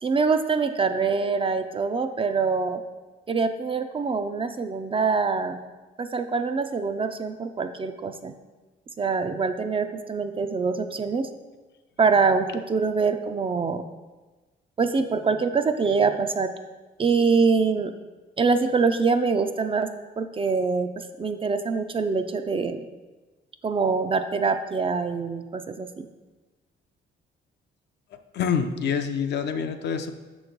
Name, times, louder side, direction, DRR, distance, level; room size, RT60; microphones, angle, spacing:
voice 1, 0.0-2.8 3.3-5.6 6.0-8.3 9.0-11.3 12.0-13.8 14.8-16.5 17.0-17.9 18.4-19.9 20.2-22.9 23.6-26.1, right 4 dB, 25° right, 8 dB, 0.3 m, -24 dB
voice 2, 28.3-30.1, left 7 dB, 60° left, 7 dB, 0.5 m, -26 dB
6.2 x 3.1 x 5.1 m, 1.2 s
cardioid pair, 90°, 20 cm